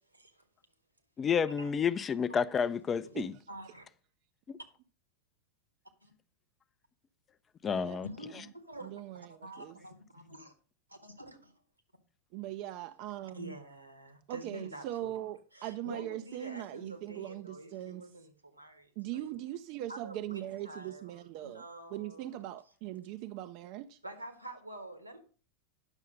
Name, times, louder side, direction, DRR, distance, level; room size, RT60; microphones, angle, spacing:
voice 1, 1.2-3.3 4.5-4.6 7.6-8.1, left 7 dB, 20° left, 0.4 m, -30 dB
voice 2, 3.5-3.9 6.0-6.1 8.0-10.5 10.9-11.6 13.3-15.1 15.5-19.3 19.9-22.3 24.0-25.2, right 1 dB, 85° right, 1.5 m, -47 dB
voice 3, 8.8-9.8 12.3-13.6 14.3-18.1 19.0-21.6 21.9-24.0, right 13 dB, 45° right, 0.4 m, -40 dB
9.8 x 6.4 x 5.2 m
figure-of-eight pair, 90°, 0 cm